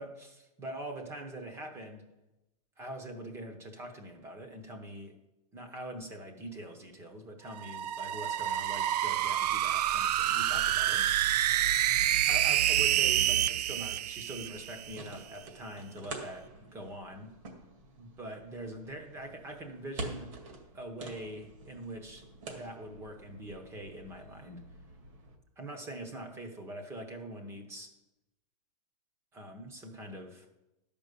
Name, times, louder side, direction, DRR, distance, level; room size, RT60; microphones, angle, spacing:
voice 1, 0.0-2.1 2.8-5.2 5.5-11.4 12.0-17.3 18.0-20.3 20.7-24.7 25.6-27.9 29.3-30.5, right 1 dB, 15° right, 5 dB, 0.9 m, -43 dB
sound 1, 7.5-15.0, right 12 dB, 85° right, 0.4 m, -28 dB
sound 2, 14.4-25.4, right 2 dB, 50° right, 1.9 m, -47 dB
11.5 x 5.2 x 6.8 m, 0.94 s
supercardioid pair, 170°, 20 cm